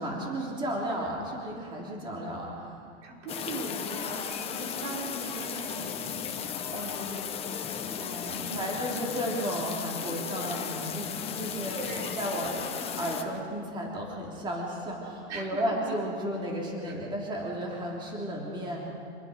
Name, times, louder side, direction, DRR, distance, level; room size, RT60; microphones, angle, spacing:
voice 1, 0.0-2.7 6.7-7.3 8.0-12.5 13.0-18.9, equal, 15° right, -2 dB, 3.3 m, -34 dB
voice 2, 3.0-6.4 6.6-7.0 8.3-8.6 11.8-12.3 15.3-16.0, right 3 dB, 85° right, -1 dB, 5.8 m, -40 dB
sound 1, 3.3-13.2, left 7 dB, 15° left, 1.3 m, -35 dB
27.5 x 20.5 x 5.2 m, 2.4 s
supercardioid pair, 160°, 35 cm